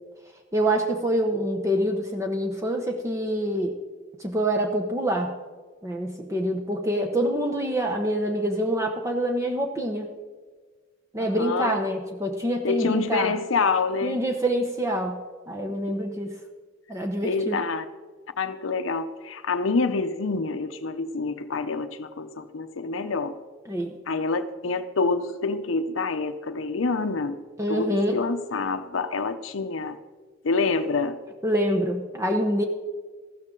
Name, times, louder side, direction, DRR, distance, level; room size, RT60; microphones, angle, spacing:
voice 1, 0.5-3.7 4.2-5.3 5.8-10.1 11.1-13.3 14.0-15.2 15.5-16.4 16.9-17.6 23.7-23.9 27.6-28.2 31.4-32.6, equal, 15° right, 2 dB, 0.8 m, -26 dB
voice 2, 11.2-11.8 12.6-14.2 17.2-17.8 18.4-23.3 24.1-27.4 27.7-30.0 30.4-31.2, left 4 dB, 80° left, 8 dB, 0.7 m, -27 dB
14.5 x 13.0 x 3.8 m, 1.4 s
head